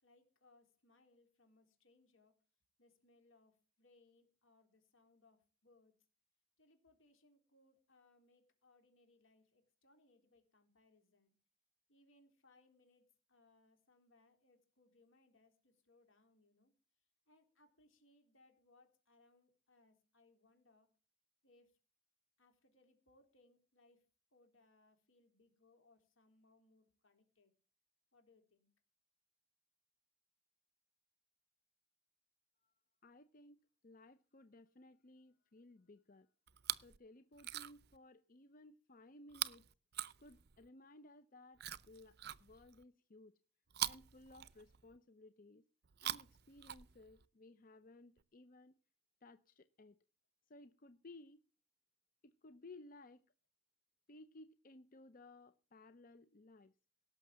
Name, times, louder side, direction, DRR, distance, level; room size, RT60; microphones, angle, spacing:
voice 1, 0.0-2.3 2.8-6.0 6.6-11.4 11.9-16.7 17.3-20.9 21.4-21.8 22.4-27.5 28.1-28.7, left 2 dB, 75° left, 3.7 m, -71 dB
voice 2, 33.0-36.3 36.8-39.7 40.2-43.3 43.8-45.6 46.0-48.8 49.2-50.0 50.5-51.4 52.2-53.3 54.1-56.7, left 2 dB, 45° left, 0.6 m, -59 dB
Chewing mastication, 36.5-37.0 37.3-38.0 39.3-40.7 41.6-42.8 43.7-45.0 45.8-47.3 48.2-48.3, right 11 dB, 50° right, 0.6 m, -44 dB
17.5 x 6.6 x 7.4 m
head